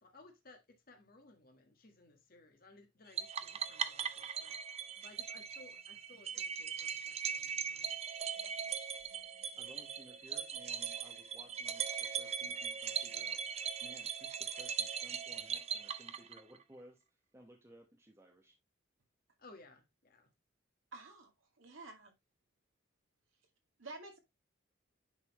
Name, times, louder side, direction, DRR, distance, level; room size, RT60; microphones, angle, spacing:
voice 1, 0.0-4.6 5.0-8.0 19.4-20.3, left 2 dB, 50° left, 1.5 m, -60 dB
sound 1, 3.2-16.6, right 7 dB, 35° right, 0.5 m, -40 dB
voice 2, 9.5-13.4 13.8-18.6, equal, 15° right, 1.1 m, -59 dB
voice 3, 20.9-21.3 21.6-22.1 23.8-24.2, right 2 dB, 90° right, 2.2 m, -49 dB
9.9 x 4.2 x 3.0 m
head